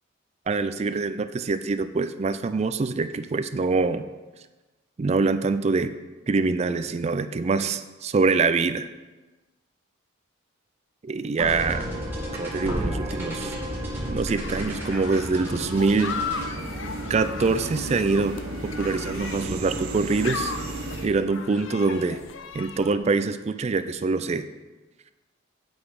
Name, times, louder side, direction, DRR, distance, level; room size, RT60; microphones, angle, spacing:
voice 1, 0.5-4.1 5.0-5.9 6.3-8.9 11.0-11.9 12.4-13.5 14.1-16.2 17.1-20.5 21.0-22.2 22.5-24.4, right 4 dB, 30° right, 11 dB, 0.3 m, -24 dB
sound 1, 11.4-18.7, equal, 10° right, 1.8 m, -34 dB
sound 2, 11.5-21.1, right 2 dB, 85° right, 1.0 m, -35 dB
sound 3, 14.4-23.0, left 5 dB, 65° left, 0.5 m, -36 dB
8.0 x 5.2 x 4.9 m, 1.2 s
head